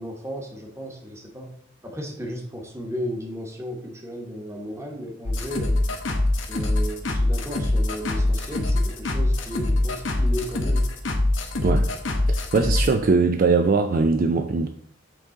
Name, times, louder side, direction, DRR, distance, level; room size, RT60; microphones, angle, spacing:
voice 1, 0.0-1.5 1.8-5.9 6.4-10.9, equal, 15° right, 1.1 m, -34 dB
sound 1, 5.2-12.9, left 1 dB, 75° left, 0.9 m, -23 dB
voice 2, 12.3-14.7, right 4 dB, 45° right, 0.4 m, -21 dB
7.9 x 3.8 x 3.8 m
head